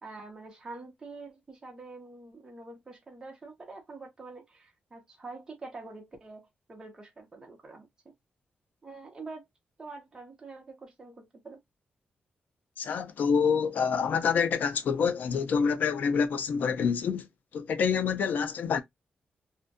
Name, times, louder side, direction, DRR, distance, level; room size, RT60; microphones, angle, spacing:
voice 1, 0.0-7.9 8.8-9.4 9.8-11.6, right 3 dB, 20° right, 0.6 m, -46 dB
voice 2, 12.8-17.3 17.5-18.8, left 6 dB, 65° left, 0.4 m, -27 dB
2.6 x 2.1 x 2.5 m
wide cardioid pair, 165°, 3 cm